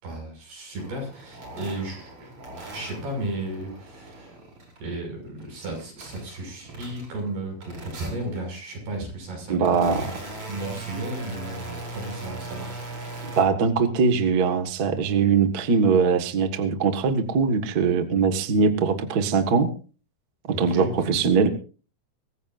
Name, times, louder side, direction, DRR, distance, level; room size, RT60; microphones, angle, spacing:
voice 1, 0.0-2.3 2.7-4.4 4.8-12.8 20.5-21.1, right 1 dB, 85° right, 2 dB, 8.3 m, -34 dB
sound 1, 0.8-4.9 5.2-7.3 7.6-8.5 9.1-13.4, right 2 dB, 35° right, 5.9 m, -39 dB
voice 2, 9.5-10.1 13.2-19.7 20.6-21.5, right 5 dB, 50° right, 7 dB, 1.1 m, -21 dB
23.5 x 15.0 x 2.6 m, 0.38 s
omnidirectional pair, 4.5 m